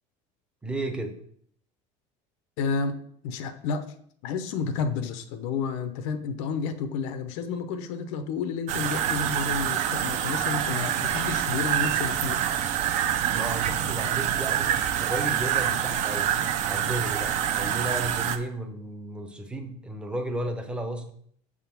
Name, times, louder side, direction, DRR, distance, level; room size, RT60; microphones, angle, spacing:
voice 1, 0.6-1.2 13.3-16.4 16.6-21.1, right 1 dB, 5° right, 5 dB, 0.6 m, -33 dB
voice 2, 2.6-2.9 3.2-3.9 4.2-12.4 13.6-13.7, left 5 dB, 80° left, 9 dB, 0.7 m, -31 dB
sound 1, 8.7-18.4, right 10 dB, 50° right, 0.6 m, -26 dB
6.6 x 3.7 x 5.9 m, 0.63 s
cardioid pair, 165°, 15 cm